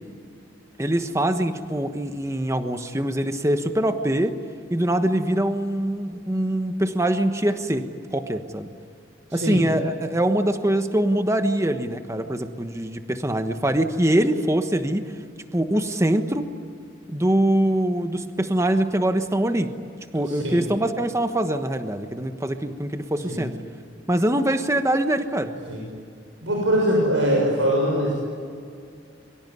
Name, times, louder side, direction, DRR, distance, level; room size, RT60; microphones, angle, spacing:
voice 1, 0.8-4.4 4.7-8.7 9.3-15.1 15.5-16.5 17.1-19.7 20.1-23.5 24.1-25.6, right 1 dB, 15° right, 7 dB, 1.3 m, -23 dB
voice 2, 9.3-9.6 20.3-20.6 23.3-23.4 25.7-25.8 26.4-28.1, equal, 90° right, -2 dB, 6.7 m, -22 dB
26.0 x 24.0 x 9.5 m, 2.3 s
head